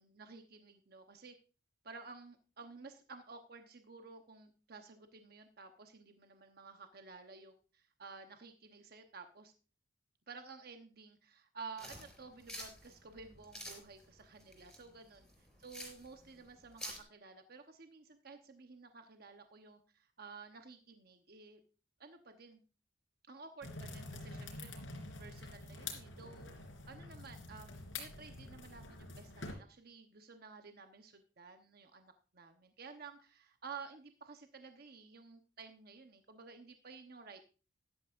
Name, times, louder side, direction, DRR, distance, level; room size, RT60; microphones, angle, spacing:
voice 1, 0.0-1.3 1.8-9.5 10.3-15.3 15.6-21.6 22.0-22.6 23.3-24.8 25.2-26.5 26.9-37.4, right 4 dB, 50° right, 6 dB, 1.0 m, -53 dB
sound 1, 11.8-17.0, equal, ahead, 4.2 m, -49 dB
sound 2, 23.6-29.5, left 3 dB, 75° left, 3.3 m, -47 dB
13.5 x 11.5 x 2.5 m, 0.35 s
head